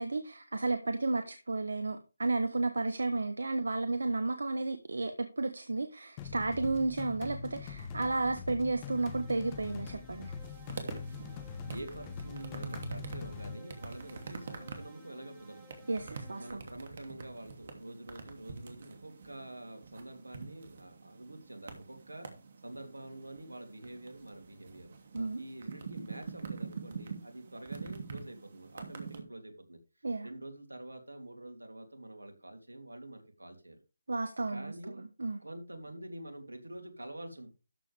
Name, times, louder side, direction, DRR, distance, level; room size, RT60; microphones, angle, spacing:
voice 1, 0.0-10.3 15.9-16.6 25.1-25.4 30.0-30.3 34.1-35.4, right 3 dB, 75° right, 8 dB, 1.2 m, -33 dB
sound 1, 6.2-13.6, left 6 dB, 25° left, 1.1 m, -43 dB
sound 2, 8.8-16.5, left 3 dB, 15° right, 4.7 m, -58 dB
sound 3, 10.4-29.2, right 4 dB, 50° right, 2.7 m, -46 dB
voice 2, 11.3-15.7 16.4-22.3 22.6-24.9 25.3-29.8 30.2-33.8 34.5-35.1 35.4-37.5, right 1 dB, 90° right, 5 dB, 2.9 m, -47 dB
13.0 x 7.3 x 3.4 m, 0.32 s
figure-of-eight pair, 155°, 0 cm